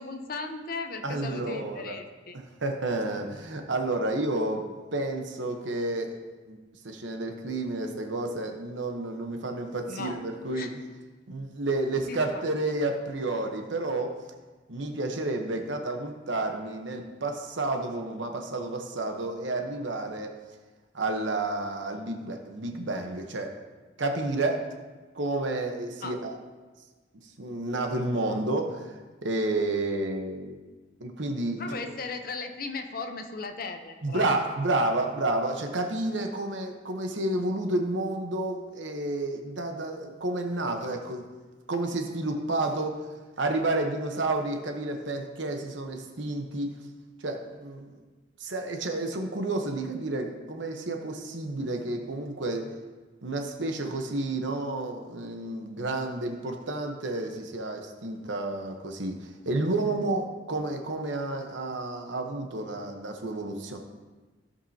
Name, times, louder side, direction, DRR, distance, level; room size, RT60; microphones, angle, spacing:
voice 1, 0.0-2.4 9.9-10.2 10.5-10.7 12.1-12.4 26.0-26.2 31.6-34.3, left 3 dB, 50° left, 6 dB, 0.7 m, -37 dB
voice 2, 1.0-2.0 2.6-4.7 4.9-6.1 6.5-10.7 11.3-14.1 14.7-20.3 20.9-23.5 24.0-24.7 25.1-26.4 27.4-28.9 29.2-30.6 31.0-31.8 34.0-41.2 41.7-43.0 43.4-46.7 47.2-47.9 48.4-52.7 53.2-63.8, right 2 dB, 75° right, 4 dB, 1.0 m, -30 dB
16.5 x 5.5 x 2.8 m, 1.3 s
head